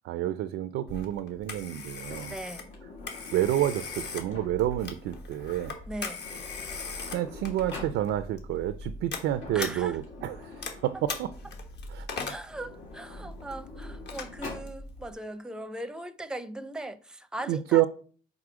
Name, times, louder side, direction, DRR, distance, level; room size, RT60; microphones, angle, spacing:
voice 1, 0.0-2.3 3.3-5.8 7.0-10.6 10.8-11.3 11.9-12.1 17.5-17.9, right 13 dB, 90° right, 0.4 m, -29 dB
Telephone, 0.9-15.1, left 3 dB, 60° left, 1.3 m, -40 dB
Sliding door, 2.0-4.8 5.8-5.9 6.1-8.0 9.1-11.7 12.4-14.7, left 3 dB, 85° left, 1.8 m, -46 dB
voice 2, 2.3-2.7 5.9-6.3 9.5-10.0 12.2-17.9, right 1 dB, 5° right, 0.5 m, -39 dB
4.8 x 4.0 x 4.9 m
cardioid pair, 90°, 20 cm